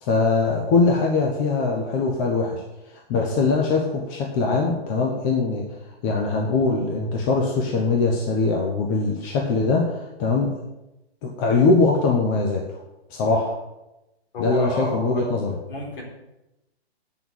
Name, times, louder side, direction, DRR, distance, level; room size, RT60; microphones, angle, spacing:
voice 1, 0.0-2.6 3.1-5.6 6.0-10.5 11.2-12.6 13.1-13.5 14.4-15.5, left 3 dB, 20° left, 0 dB, 0.8 m, -22 dB
voice 2, 14.3-15.3 15.7-16.0, left 2 dB, 55° left, -1 dB, 3.8 m, -30 dB
9.0 x 6.2 x 7.9 m, 0.96 s
hypercardioid pair, 160°, 33 cm